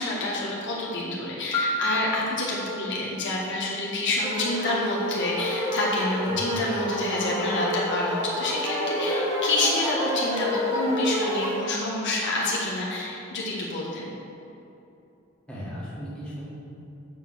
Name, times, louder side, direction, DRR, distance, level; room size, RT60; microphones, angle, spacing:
voice 1, 0.0-14.1, left 2 dB, 60° left, -4 dB, 1.4 m, -28 dB
Piano, 1.5-3.4, left 1 dB, 25° left, 1.5 m, -31 dB
sound 1, 4.2-11.6, equal, 20° right, 1.3 m, -28 dB
voice 2, 6.3-6.6 15.5-16.5, equal, 5° left, -8 dB, 1.7 m, -36 dB
7.9 x 4.9 x 6.2 m, 2.9 s
head